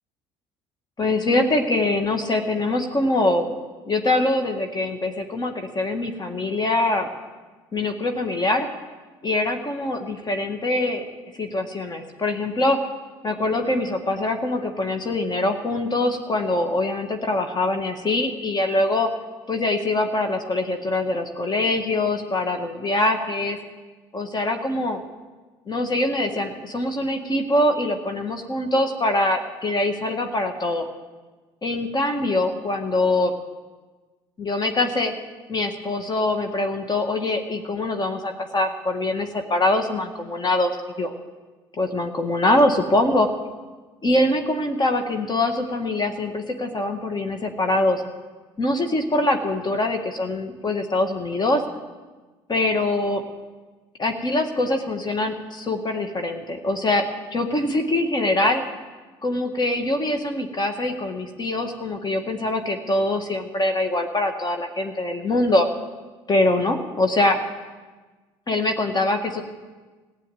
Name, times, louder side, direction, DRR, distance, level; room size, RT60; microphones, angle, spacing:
voice 1, 1.0-3.4 3.9-7.1 7.7-8.7 9.2-11.0 11.4-12.8 13.2-19.1 19.5-23.6 24.1-25.0 25.7-30.9 31.6-33.3 34.4-35.1 35.5-40.7 41.0-41.1 41.8-43.3 44.0-48.0 48.6-51.6 52.5-53.2 54.0-57.0 57.3-58.6 59.2-65.7 66.3-67.4 68.5-69.4, left 2 dB, 35° left, 5 dB, 1.7 m, -23 dB
15.5 x 7.8 x 9.2 m, 1.3 s
hypercardioid pair, 65°, 12 cm